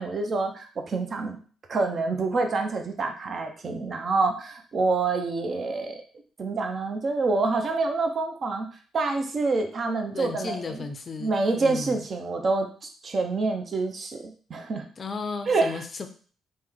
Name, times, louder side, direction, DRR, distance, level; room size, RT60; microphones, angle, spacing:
voice 1, 0.0-1.4 1.7-6.0 6.4-8.7 8.9-10.8 11.2-14.9 15.5-15.8, right 3 dB, 45° right, 5 dB, 0.5 m, -27 dB
voice 2, 10.1-12.0 15.0-16.1, left 4 dB, 40° left, 7 dB, 0.4 m, -35 dB
3.0 x 2.1 x 3.6 m, 0.42 s
cardioid pair, 90°, 0 cm